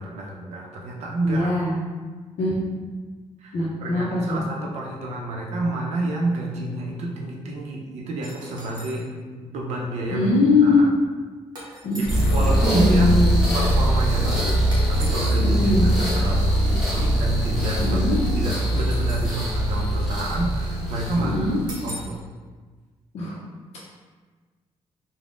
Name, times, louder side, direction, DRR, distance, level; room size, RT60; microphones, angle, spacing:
voice 1, 0.0-1.5 3.4-9.1 9.4-10.3 10.6-10.9 11.7-11.8 12.3-13.1 13.5-18.0 18.4-21.4 21.8-22.2, right 1 dB, 80° right, -2 dB, 0.6 m, -29 dB
voice 2, 1.2-1.8 2.4-2.6 3.5-4.4 10.1-10.8 11.8-12.1 12.6-13.4 15.4-15.9 17.8-18.2 21.2-21.6 23.1-23.4, left 2 dB, 65° left, -7 dB, 0.5 m, -21 dB
sound 1, 8.2-9.0 11.6-12.4 14.7-15.4 18.5-19.5 21.7-22.2, right 1 dB, 40° right, 0.6 m, -40 dB
sound 2, 12.0-22.0, right 1 dB, 5° right, 0.7 m, -22 dB
3.5 x 2.0 x 2.5 m, 1.4 s
wide cardioid pair, 175°, 11 cm